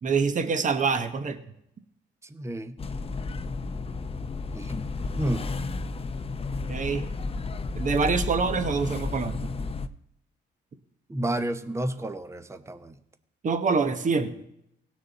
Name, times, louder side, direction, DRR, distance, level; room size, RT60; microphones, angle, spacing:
voice 1, 0.0-1.4 6.7-7.1 7.8-9.4 13.4-14.4, right 5 dB, 40° right, 9 dB, 1.1 m, -25 dB
voice 2, 2.2-2.8 4.5-4.7 5.2-5.5 11.1-13.0, right 1 dB, 15° right, 10 dB, 0.8 m, -31 dB
sound 1, 2.8-9.9, left 4 dB, 30° left, 0.6 m, -32 dB
18.0 x 6.4 x 4.1 m, 0.76 s
cardioid pair, 90°, 20 cm